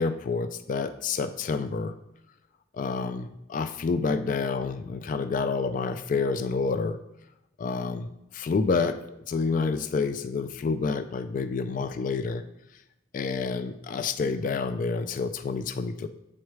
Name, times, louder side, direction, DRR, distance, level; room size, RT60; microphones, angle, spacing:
voice 1, 0.0-1.9 2.7-7.0 7.6-8.1 8.3-12.4 13.1-16.1, left 4 dB, 45° left, 11 dB, 0.3 m, -28 dB
7.4 x 4.6 x 3.2 m, 0.87 s
head